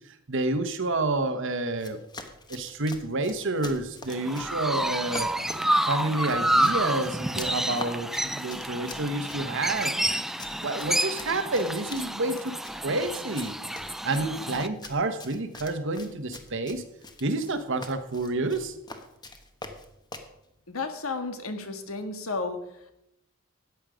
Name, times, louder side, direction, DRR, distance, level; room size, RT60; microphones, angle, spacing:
voice 1, 0.1-2.0 2.5-5.3 5.8-10.2 10.6-12.5 12.8-13.6 14.0-16.8 17.2-18.8, right 2 dB, 60° right, 9 dB, 1.1 m, -29 dB
Run, 1.7-20.3, left 2 dB, 20° left, 1.1 m, -44 dB
Chirp tweet, 4.1-14.7, right 1 dB, ahead, 0.3 m, -29 dB
voice 2, 20.7-22.6, left 3 dB, 80° left, 7 dB, 1.6 m, -32 dB
14.0 x 9.2 x 5.1 m, 0.81 s
head